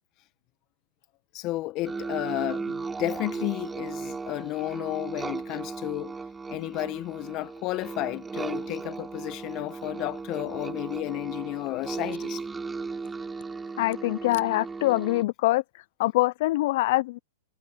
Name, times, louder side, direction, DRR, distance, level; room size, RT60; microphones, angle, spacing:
voice 1, 1.3-6.1 6.5-12.4, left 18 dB, 35° left, 1.3 m, -32 dB
sound 1, 1.8-15.2, right 4 dB, 10° right, 8.0 m, -36 dB
voice 2, 13.8-15.6 16.0-17.2, left 18 dB, 55° left, 0.6 m, -24 dB
hypercardioid pair, 130°, 0 cm